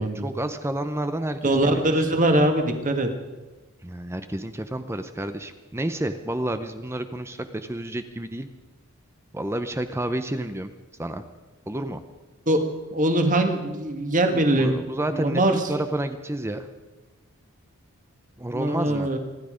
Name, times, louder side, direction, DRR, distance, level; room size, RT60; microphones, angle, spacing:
voice 1, 0.0-2.0 3.8-8.5 9.3-10.7 11.0-11.2 11.7-12.0 14.3-16.7 18.4-19.1, right 1 dB, 10° right, 9 dB, 0.6 m, -30 dB
voice 2, 1.4-3.1 12.5-12.6 12.9-14.8 15.1-15.6 18.5-19.2, right 1 dB, 35° right, 6 dB, 1.8 m, -22 dB
26.5 x 10.5 x 5.1 m, 1.2 s
head